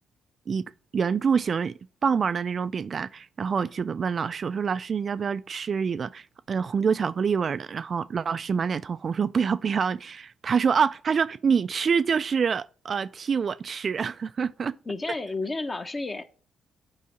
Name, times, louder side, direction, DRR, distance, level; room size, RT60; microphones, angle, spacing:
voice 1, 0.9-1.7 2.0-14.8, right 6 dB, 45° right, 0.3 m, -26 dB
voice 2, 14.9-16.2, left 3 dB, 30° left, 1.1 m, -31 dB
8.5 x 4.7 x 6.9 m
cardioid pair, 90°, 0 cm